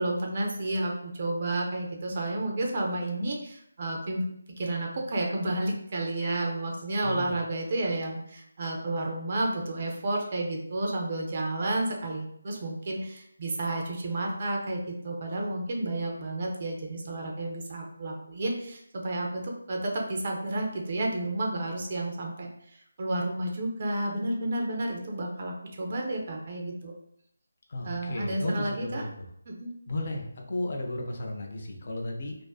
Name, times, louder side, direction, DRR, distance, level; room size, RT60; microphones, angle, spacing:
voice 1, 0.0-26.9 27.8-29.0 29.5-29.7, right 1 dB, 35° right, 0 dB, 0.4 m, -31 dB
voice 2, 7.0-7.3 27.7-29.3 29.9-32.4, left 1 dB, 40° left, 1 dB, 0.4 m, -34 dB
2.4 x 2.4 x 2.2 m, 0.72 s
figure-of-eight pair, 175°, 0 cm